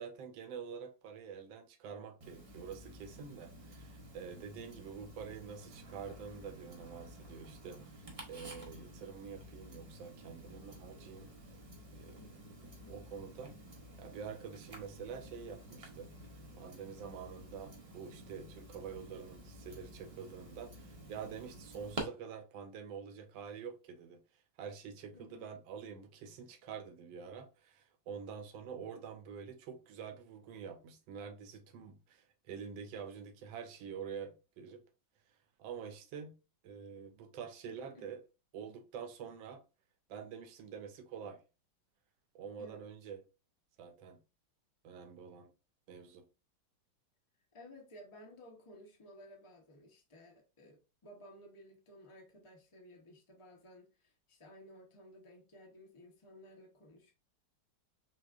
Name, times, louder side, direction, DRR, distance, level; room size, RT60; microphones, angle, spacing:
voice 1, 0.0-11.3 11.9-12.2 12.9-13.6 14.0-16.1 16.5-24.2 24.6-34.8 35.6-36.3 36.6-38.2 38.5-39.6 40.1-41.4 42.3-43.2 43.8-44.2 44.8-45.5 45.9-46.2, right 6 dB, 85° right, 1.4 m, -47 dB
Tick-tock, 2.2-22.0, right 1 dB, 40° right, 0.5 m, -51 dB
voice 2, 12.1-13.2 25.1-25.4 37.7-38.1 42.6-42.9 47.5-57.1, equal, 40° left, 0.4 m, -56 dB
6.0 x 2.4 x 2.4 m
omnidirectional pair, 2.1 m